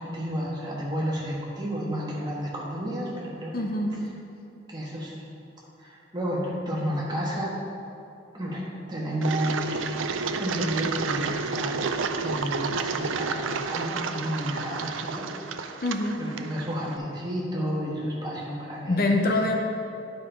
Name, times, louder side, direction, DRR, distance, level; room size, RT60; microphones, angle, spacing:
voice 1, 0.0-3.7 4.7-5.2 5.8-7.5 8.3-10.0 10.4-15.8 16.2-19.1, equal, 20° right, -4 dB, 1.4 m, -31 dB
voice 2, 3.5-3.9 15.8-16.2 18.2-18.3 18.9-19.6, left 2 dB, 50° left, 2 dB, 0.6 m, -24 dB
Engine, 9.2-17.0, right 5 dB, 80° right, 0.4 m, -31 dB
9.7 x 5.3 x 4.5 m, 2.8 s
head